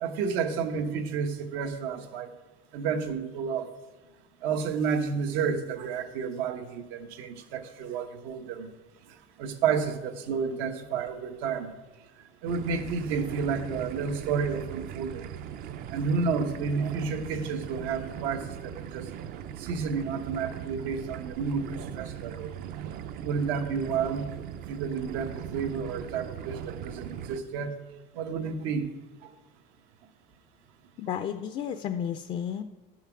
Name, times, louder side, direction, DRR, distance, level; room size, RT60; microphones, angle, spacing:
voice 1, 0.0-2.3 2.7-3.7 4.4-8.7 9.4-11.7 12.4-15.3 15.9-19.1 19.6-22.5 23.2-24.2 24.7-27.8 28.1-28.9 29.2-29.3, right 6 dB, 85° right, 7 dB, 1.0 m, -31 dB
sound 1, 12.5-27.4, right 9 dB, 50° right, 0.5 m, -39 dB
voice 2, 31.0-32.6, left 9 dB, 30° left, 9 dB, 0.3 m, -32 dB
12.0 x 5.8 x 5.8 m, 1.2 s
cardioid pair, 165°, 20 cm